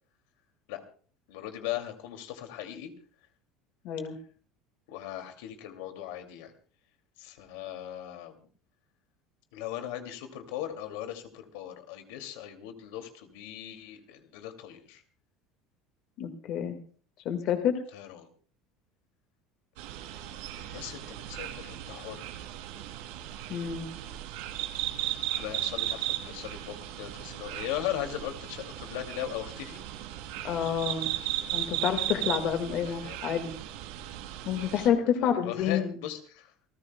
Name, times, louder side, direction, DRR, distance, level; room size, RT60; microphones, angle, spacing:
voice 1, 1.3-2.9 4.9-6.5 7.2-8.4 9.5-15.0 17.9-18.3 20.6-22.3 25.0-25.1 25.4-29.8 32.8-33.4 34.7-34.9 35.2-36.5, left 12 dB, 85° left, 6 dB, 2.6 m, -38 dB
voice 2, 3.8-4.2 16.2-16.8 17.3-17.7 23.5-23.9 30.4-31.1 31.5-33.5 34.5-35.9, left 8 dB, 45° left, 7 dB, 1.9 m, -28 dB
sound 1, 19.8-34.9, right 14 dB, 85° right, 2.8 m, -36 dB
28.5 x 15.0 x 2.3 m, 0.43 s
cardioid pair, 165°, 0 cm